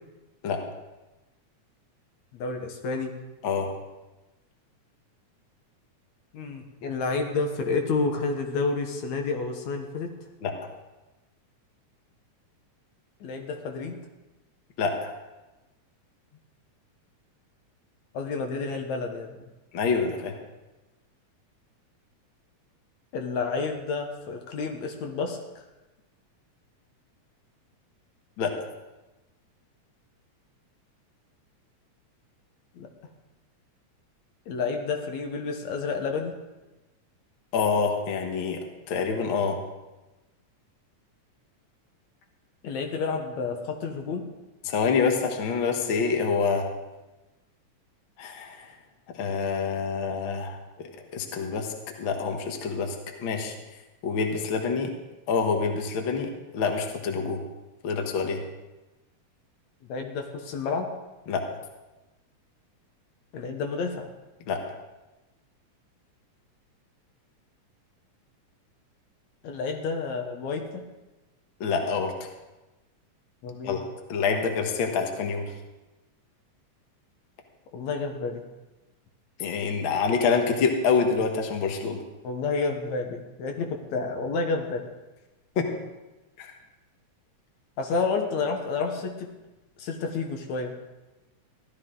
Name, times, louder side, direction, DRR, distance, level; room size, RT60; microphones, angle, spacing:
voice 1, 2.3-3.2 6.3-10.1 13.2-14.0 18.1-19.4 23.1-25.7 32.7-32.9 34.5-36.3 42.6-44.3 59.8-61.0 63.3-64.1 69.4-70.9 73.4-73.8 77.7-78.4 82.2-84.8 87.8-89.3 89.8-90.7, left 4 dB, 75° left, 4 dB, 2.4 m, -30 dB
voice 2, 14.8-15.1 19.7-20.3 28.4-28.5 37.5-38.6 38.9-39.6 44.7-46.7 48.2-48.7 49.2-50.6 51.1-51.7 52.0-53.5 54.0-54.9 55.3-57.4 57.8-58.4 61.3-61.5 64.5-64.6 71.6-72.1 73.6-73.8 74.1-75.5 79.4-82.0 85.6-85.7 86.4-86.5, left 5 dB, 50° left, 3 dB, 1.7 m, -26 dB
15.0 x 12.0 x 3.8 m, 1.1 s
omnidirectional pair, 3.4 m